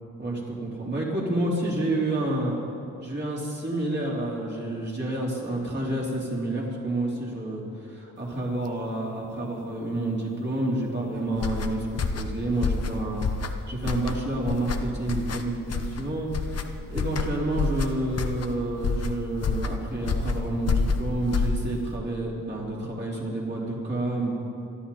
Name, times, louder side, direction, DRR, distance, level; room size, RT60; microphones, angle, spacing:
voice 1, 0.2-2.6 3.0-13.2 13.7-24.3, right 2 dB, 35° right, -4 dB, 3.8 m, -29 dB
sound 1, 11.3-22.0, left 4 dB, 50° left, 1.0 m, -28 dB
26.5 x 11.5 x 4.3 m, 2.9 s
wide cardioid pair, 125°, 32 cm